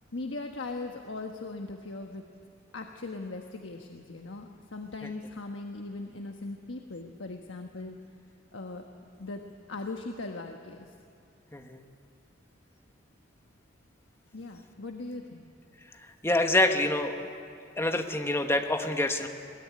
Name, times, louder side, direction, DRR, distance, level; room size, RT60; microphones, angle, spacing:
voice 1, 0.1-2.2 2.7-8.0 8.5-8.8 9.2-9.4 9.7-10.9 14.3-15.5, left 3 dB, 75° left, 3 dB, 1.3 m, -39 dB
voice 2, 11.5-11.8 16.2-17.1 17.8-19.3, left 1 dB, 15° left, 5 dB, 1.4 m, -26 dB
21.0 x 20.0 x 9.7 m, 2.4 s
head